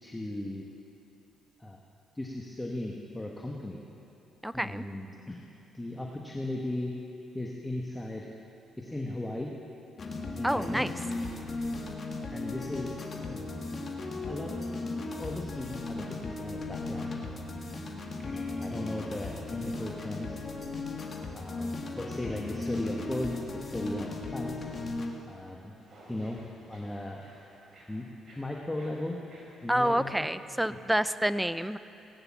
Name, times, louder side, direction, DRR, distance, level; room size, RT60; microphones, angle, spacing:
voice 1, 0.0-0.7 1.6-1.8 2.1-3.8 4.5-5.4 5.7-6.9 7.3-8.3 8.8-9.5 10.4-10.8 12.3-13.0 13.3-13.4 14.2-14.6 15.2-17.1 18.2-20.4 21.3-24.7 25.3-25.8 26.1-26.4 26.7-27.3 27.9-28.1 28.3-29.2 29.6-30.3 30.7-30.8, left 1 dB, 15° left, -1 dB, 1.3 m, -37 dB
voice 2, 4.4-4.8 10.4-10.9 29.7-31.8, equal, 5° right, 14 dB, 0.5 m, -28 dB
sound 1, 10.0-25.1, left 3 dB, 40° left, 1.7 m, -36 dB
sound 2, 25.8-30.9, right 1 dB, 45° right, 4.0 m, -56 dB
18.0 x 9.4 x 7.2 m, 2.9 s
cardioid pair, 90°, 0 cm